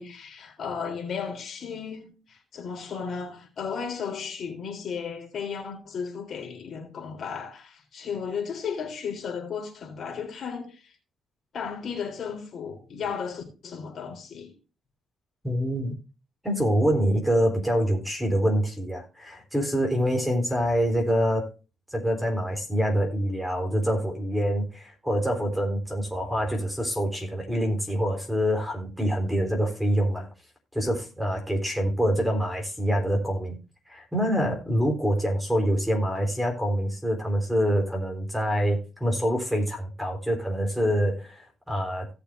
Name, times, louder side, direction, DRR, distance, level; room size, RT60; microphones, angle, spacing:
voice 1, 0.0-10.9 11.5-14.5, left 6 dB, 55° left, 3.7 m, -34 dB
voice 2, 15.4-15.9 16.4-21.5 21.9-30.3 30.7-33.6 33.9-42.1, equal, 5° right, 3.9 m, -26 dB
17.0 x 6.8 x 2.7 m
cardioid pair, 110°, 0 cm